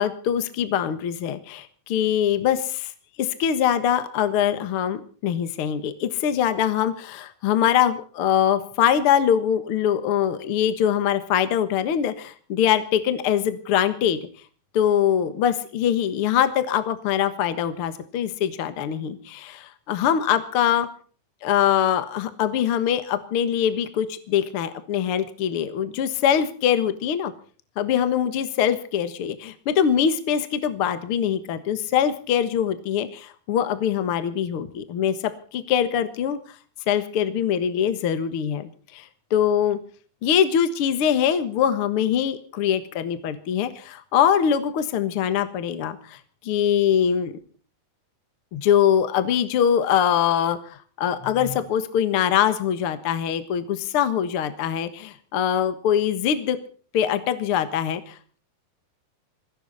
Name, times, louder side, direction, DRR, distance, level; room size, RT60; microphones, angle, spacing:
voice 1, 0.0-2.9 3.2-14.2 14.7-20.9 21.4-27.3 27.8-35.2 35.5-36.4 36.9-39.8 40.2-46.2 46.4-47.3 48.5-56.6 56.9-58.4, left 9 dB, 85° left, 11 dB, 1.2 m, -23 dB
21.0 x 16.0 x 4.1 m, 0.42 s
omnidirectional pair, 4.9 m